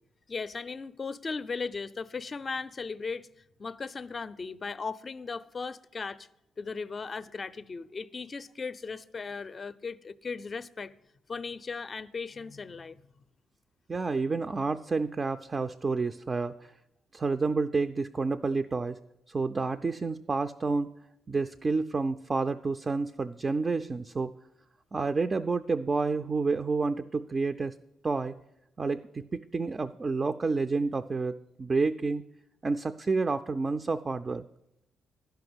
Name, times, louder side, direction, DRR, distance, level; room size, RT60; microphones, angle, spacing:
voice 1, 0.3-3.3 3.6-6.3 6.6-10.9 11.3-13.0, left 4 dB, 35° left, 0.4 m, -37 dB
voice 2, 13.9-16.7 17.1-19.0 19.3-20.9 21.3-24.3 24.9-27.7 28.0-28.3 28.8-32.2 32.6-34.4, right 4 dB, 30° right, 0.3 m, -29 dB
11.5 x 5.7 x 7.8 m
cardioid pair, 90°, 0 cm